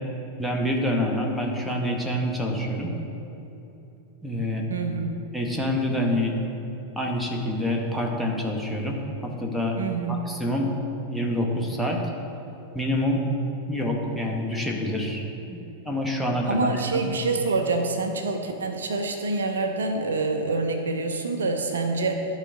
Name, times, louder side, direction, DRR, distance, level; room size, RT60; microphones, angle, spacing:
voice 1, 0.4-2.9 4.2-4.6 5.3-6.3 7.0-9.8 10.1-10.7 11.1-12.0 12.7-13.2 13.7-15.6 15.8-17.0, left 1 dB, ahead, -1 dB, 1.1 m, -27 dB
voice 2, 4.7-5.3 9.8-10.3 16.4-22.3, right 3 dB, 70° right, 5 dB, 0.6 m, -26 dB
12.0 x 4.0 x 4.7 m, 3.0 s
figure-of-eight pair, 90°, 0 cm